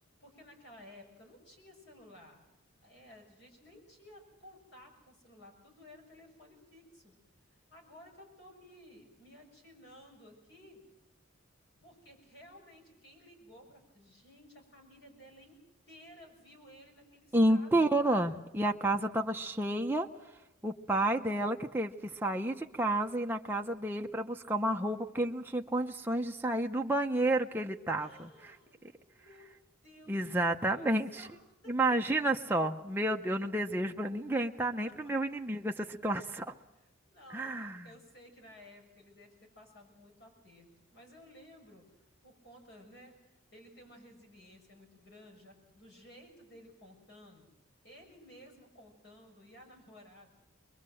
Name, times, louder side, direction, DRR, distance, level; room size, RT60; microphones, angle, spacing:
voice 1, 0.2-2.4 2.8-7.1 7.7-10.8 11.8-15.6 15.9-18.0 28.0-29.5 29.8-30.4 30.7-31.4 31.6-31.8 34.9-35.0 36.7-41.9 42.2-47.5 47.8-50.3, left 1 dB, 55° left, 1 dB, 6.6 m, -56 dB
voice 2, 17.3-20.1 20.6-28.5 30.1-31.2 31.7-36.4 37.3-37.9, right 1 dB, 10° right, 2 dB, 0.7 m, -30 dB
23.5 x 22.0 x 7.8 m, 0.96 s
head